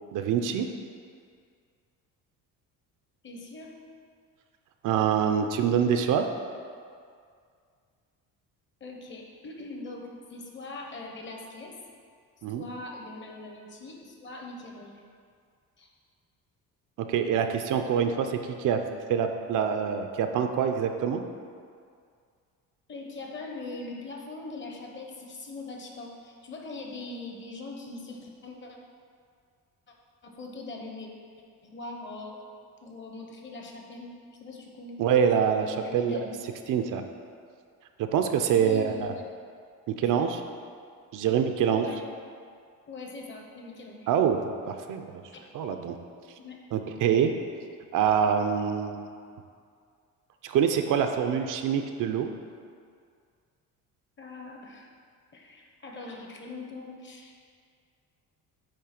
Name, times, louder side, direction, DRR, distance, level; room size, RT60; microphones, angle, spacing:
voice 1, 0.1-0.7 4.8-6.3 12.4-12.6 17.0-18.8 19.1-21.2 35.0-36.2 36.7-37.0 38.0-39.1 39.9-40.4 41.1-41.9 44.1-45.2 45.5-45.9 46.7-47.3 47.9-49.1 50.4-52.3, right 8 dB, 60° right, 6 dB, 0.6 m, -25 dB
voice 2, 3.2-3.7 8.8-11.7 12.5-15.0 15.8-15.9 22.9-28.8 30.2-31.1 31.6-32.4 32.8-35.0 35.8-36.4 37.0-37.1 38.5-39.2 41.2-41.4 41.7-42.0 42.9-44.1 46.4-46.6 54.2-54.9 55.3-57.5, left 3 dB, 30° left, 1 dB, 0.9 m, -41 dB
8.6 x 3.2 x 5.9 m, 2.2 s
cardioid pair, 145°, 35 cm